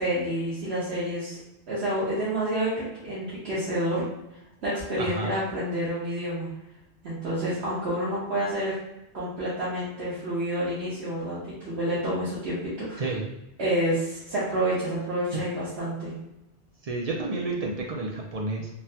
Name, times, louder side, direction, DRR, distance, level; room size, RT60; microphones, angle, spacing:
voice 1, 0.0-1.4 1.7-4.1 4.6-6.5 7.0-8.7 9.1-11.4 11.6-13.1 13.6-16.1, right 1 dB, 75° right, -10 dB, 1.2 m, -28 dB
voice 2, 5.0-5.3 13.0-13.2 16.8-18.7, right 3 dB, 55° right, -1 dB, 0.4 m, -30 dB
3.8 x 2.1 x 2.7 m, 0.91 s
omnidirectional pair, 1.1 m